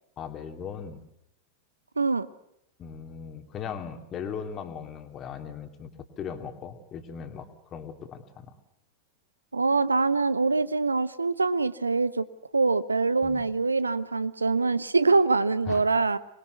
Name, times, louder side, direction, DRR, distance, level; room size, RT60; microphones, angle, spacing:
voice 1, 0.2-1.0 2.8-5.9 6.2-8.5 13.2-13.4 15.7-15.8, left 7 dB, 30° left, 6 dB, 2.8 m, -38 dB
voice 2, 2.0-2.3 9.5-12.3 12.5-16.2, right 3 dB, 80° right, 16 dB, 0.9 m, -24 dB
26.0 x 21.0 x 8.1 m, 0.78 s
figure-of-eight pair, 90°, 0 cm